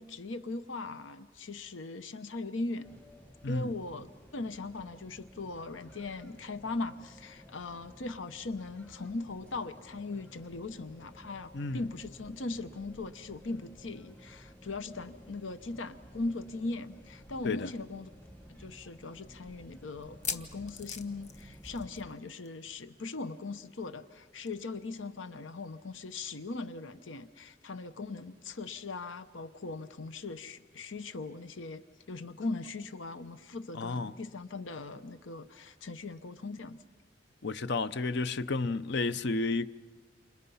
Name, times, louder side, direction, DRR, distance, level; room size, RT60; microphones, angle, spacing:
voice 1, 0.0-3.0 3.5-18.1 18.6-36.8, left 3 dB, 90° left, 0.9 m, -39 dB
sound 1, 2.8-22.1, equal, 10° left, 1.0 m, -54 dB
voice 2, 11.5-11.8 17.4-17.7 33.7-34.2 37.4-39.7, left 3 dB, 65° left, 0.7 m, -31 dB
sound 2, 17.4-17.5 17.8-17.9 18.5-18.6 20.0-22.2 22.4-22.7 22.9-23.0 24.5-24.6, left 6 dB, 40° left, 1.1 m, -40 dB
29.0 x 27.0 x 5.6 m
head